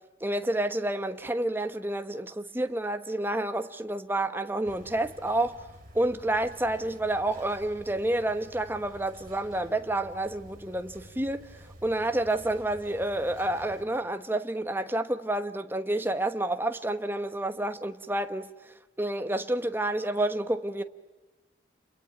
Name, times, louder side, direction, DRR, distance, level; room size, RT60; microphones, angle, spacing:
voice 1, 0.2-5.6 5.9-11.5 11.8-18.5 19.0-20.8, right 1 dB, 10° right, 1.1 m, -29 dB
students writing an exam, 4.6-13.9, equal, 45° right, 6.9 m, -50 dB
29.5 x 22.5 x 9.0 m
head